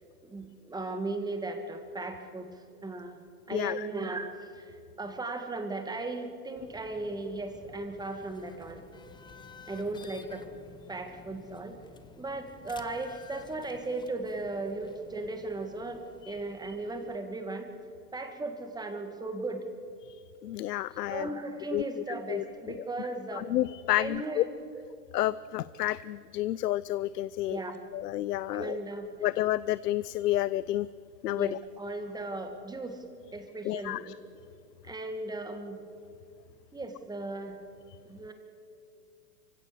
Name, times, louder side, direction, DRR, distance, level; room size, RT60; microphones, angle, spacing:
voice 1, 0.2-2.5 2.8-8.8 9.7-10.4 10.9-11.8 12.2-17.7 18.1-19.6 21.1-23.5 24.0-24.5 24.7-24.9 27.5-27.9 28.5-29.1 31.3-33.0 33.3-34.2 34.8-35.8 36.7-37.6 38.1-38.3, right 2 dB, 10° right, 6 dB, 1.8 m, -37 dB
sound 1, 6.6-17.2, left 4 dB, 10° left, 0.8 m, -53 dB
voice 2, 20.4-21.3 21.7-21.8 22.3-22.4 23.4-24.4 25.1-27.6 27.9-28.8 29.2-30.9 31.2-31.5 33.7-34.0, left 15 dB, 80° left, 18 dB, 0.6 m, -30 dB
25.0 x 16.0 x 6.8 m, 2.5 s
hypercardioid pair, 130°, 47 cm